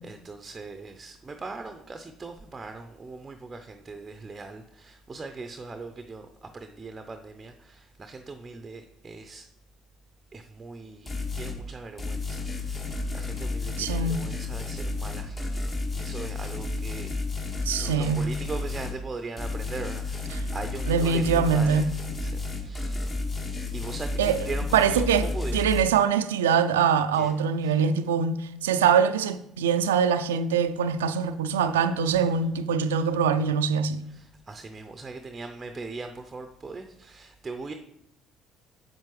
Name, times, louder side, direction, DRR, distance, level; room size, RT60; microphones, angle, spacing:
voice 1, 0.0-9.5 10.3-17.1 17.7-23.3 23.7-25.7 27.1-27.3 27.6-27.8 32.1-32.3 34.1-37.7, right 3 dB, 25° right, 0.6 m, -40 dB
sound 1, 11.1-11.6 12.0-19.0 19.4-25.8, left 3 dB, 40° left, 1.7 m, -32 dB
voice 2, 13.8-14.2 17.6-18.3 20.9-21.9 24.2-24.4 24.7-25.3 25.5-34.0, right 6 dB, 80° right, 0.3 m, -23 dB
7.6 x 7.3 x 3.1 m
hypercardioid pair, 55°, 0 cm